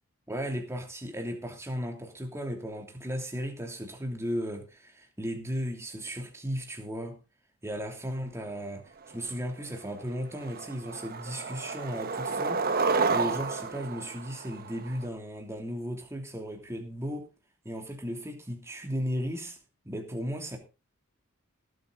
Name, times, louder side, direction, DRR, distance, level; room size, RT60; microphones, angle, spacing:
voice 1, 0.3-7.2 7.6-8.8 9.1-12.6 13.1-17.3 17.6-19.6 19.8-20.6, equal, 15° right, 3 dB, 2.9 m, -35 dB
Skateboard, 9.3-9.4 9.8-10.1 10.4-15.0, right 4 dB, 45° right, 1.1 m, -30 dB
18.5 x 8.7 x 4.0 m, 0.30 s
head